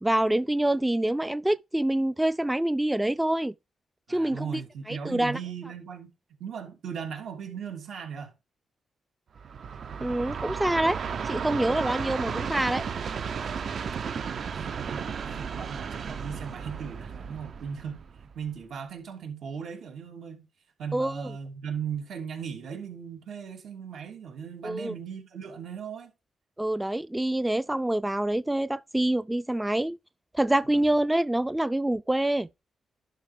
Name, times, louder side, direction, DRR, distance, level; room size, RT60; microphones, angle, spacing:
voice 1, 0.0-3.5 4.1-4.6 4.9-5.4 10.0-11.0 11.2-12.8 20.9-21.3 24.6-24.9 26.6-30.0 30.3-32.5, right 1 dB, 10° right, 0.3 m, -26 dB
voice 2, 4.1-6.1 6.4-8.3 13.5-20.5 20.8-26.1 30.7-30.9, right 7 dB, 80° right, 2.9 m, -38 dB
Train, 9.4-18.6, right 6 dB, 60° right, 0.7 m, -34 dB
11.5 x 5.1 x 3.3 m
cardioid pair, 80°, 0 cm